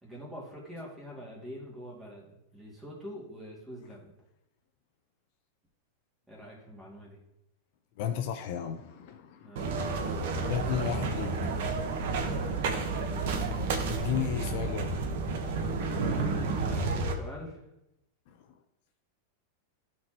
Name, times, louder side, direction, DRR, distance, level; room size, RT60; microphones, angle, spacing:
voice 1, 0.0-4.1 6.3-7.2 9.4-9.9 10.2-10.8 12.1-12.4 16.0-17.6, equal, 10° right, -4 dB, 2.4 m, -45 dB
voice 2, 8.0-9.6 10.5-11.3 13.0-13.1 13.9-14.9 18.3-18.5, left 9 dB, 55° left, 6 dB, 0.6 m, -34 dB
sound 1, 9.6-17.1, right 3 dB, 65° right, 1.1 m, -31 dB
13.0 x 4.5 x 3.0 m, 0.87 s
supercardioid pair, 145°, 0 cm